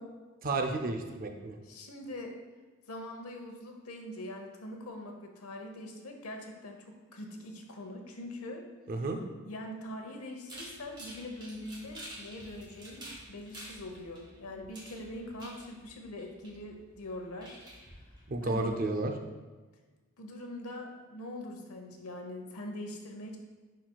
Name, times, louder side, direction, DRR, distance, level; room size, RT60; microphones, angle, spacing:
voice 1, 0.4-1.6 8.9-9.2 18.3-19.1, right 2 dB, 40° right, 5 dB, 0.5 m, -32 dB
voice 2, 1.6-2.3 2.9-8.6 9.5-17.6 18.4-18.8 20.2-23.4, left 1 dB, 80° left, 3 dB, 0.9 m, -43 dB
sound 1, 10.5-18.7, right 1 dB, 20° right, 1.4 m, -50 dB
10.0 x 4.2 x 2.3 m, 1.3 s
head